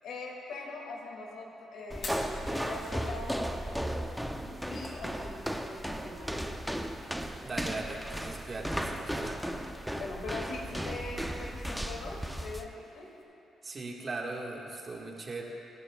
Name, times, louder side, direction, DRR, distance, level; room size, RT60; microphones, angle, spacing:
voice 1, 0.0-3.5 4.4-6.5 9.9-13.1, left 2 dB, 75° left, -1 dB, 2.8 m, -42 dB
Fire, 1.8-13.2, left 3 dB, 55° left, 3.5 m, -53 dB
sound 1, 1.9-12.7, equal, ahead, 0.8 m, -35 dB
voice 2, 7.4-9.4 13.6-15.4, right 3 dB, 35° right, -1 dB, 2.0 m, -39 dB
29.0 x 11.0 x 2.5 m, 2.8 s
cardioid pair, 90°, 0 cm